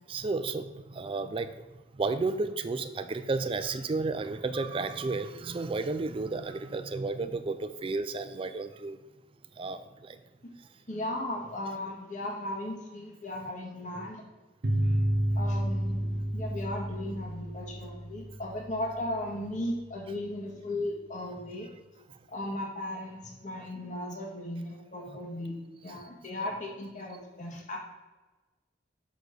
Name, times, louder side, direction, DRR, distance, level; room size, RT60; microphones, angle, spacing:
voice 1, 0.1-1.5 2.0-9.0 9.6-10.2 23.5-23.7 25.1-25.2, right 3 dB, 30° right, 10 dB, 0.4 m, -32 dB
voice 2, 10.9-14.2 15.3-21.7 22.3-27.8, left 1 dB, 45° left, 0 dB, 1.5 m, -36 dB
sound 1, 14.6-19.8, right 1 dB, 60° right, 0.9 m, -31 dB
6.5 x 6.2 x 4.9 m, 1.2 s
head